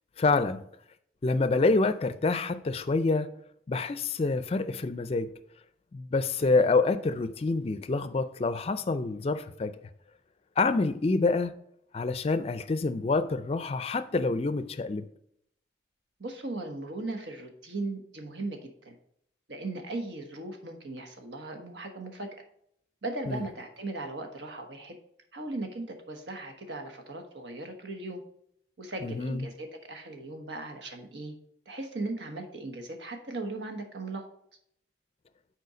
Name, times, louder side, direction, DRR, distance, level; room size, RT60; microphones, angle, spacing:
voice 1, 0.2-0.6 1.2-3.3 3.7-5.3 5.9-9.8 10.6-11.6 11.9-15.0 23.3-23.4 29.0-29.5, left 3 dB, 35° left, 0.4 m, -27 dB
voice 2, 16.2-18.9 19.5-22.3 23.0-24.9 25.3-28.2 28.8-31.3 31.7-34.2, right 2 dB, 85° right, 1.2 m, -38 dB
6.7 x 4.4 x 4.9 m
head